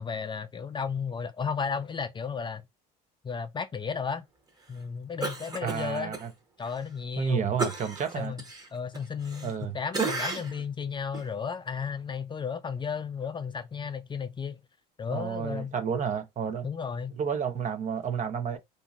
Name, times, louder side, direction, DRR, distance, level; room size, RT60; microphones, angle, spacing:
voice 1, 0.0-2.6 3.2-4.2 4.7-6.1 6.6-7.5 8.2-8.4 8.7-14.6 15.0-15.7 16.6-17.1, left 6 dB, 25° left, 0.4 m, -33 dB
Cough, 5.2-6.2 6.6-6.8 7.6-9.6 9.9-10.6 11.1-11.3, right 3 dB, 20° right, 1.0 m, -33 dB
voice 2, 5.6-6.3 7.2-8.3 9.4-9.8 15.1-16.7 17.2-18.6, right 7 dB, 40° right, 0.6 m, -31 dB
2.8 x 2.6 x 2.4 m
supercardioid pair, 80°, 20 cm